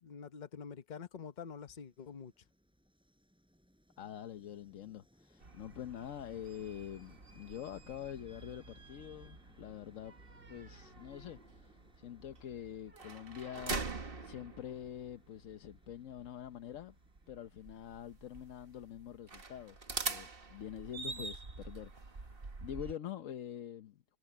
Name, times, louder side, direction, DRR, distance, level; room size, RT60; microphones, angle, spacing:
voice 1, 0.0-2.3, left 6 dB, 35° left, 0.9 m, -47 dB
Train, 1.1-18.9, equal, 5° right, 6.4 m, -67 dB
voice 2, 4.0-10.2 10.5-13.9 14.2-17.0 17.3-24.2, left 10 dB, 55° left, 1.1 m, -46 dB
sound 1, 5.4-22.9, right 4 dB, 35° right, 1.7 m, -46 dB
omnidirectional pair, 1.8 m